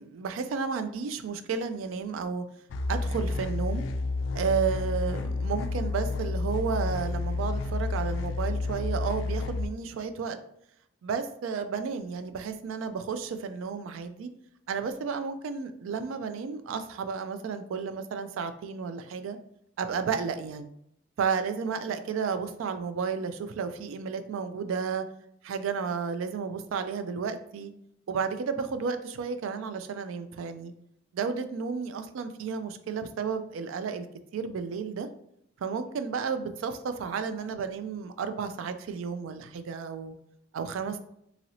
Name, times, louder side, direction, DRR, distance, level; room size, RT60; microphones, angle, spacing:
voice 1, 0.0-2.4 2.9-3.9 4.3-10.4 11.0-14.3 14.7-19.4 19.8-20.7 21.2-25.0 25.4-27.7 28.1-30.7 31.1-34.1 34.3-35.1 35.6-40.1 40.5-41.0, right 5 dB, 80° right, 10 dB, 0.3 m, -32 dB
sound 1, 2.7-9.7, left 3 dB, 65° left, 0.3 m, -30 dB
2.9 x 2.6 x 2.8 m, 0.75 s
head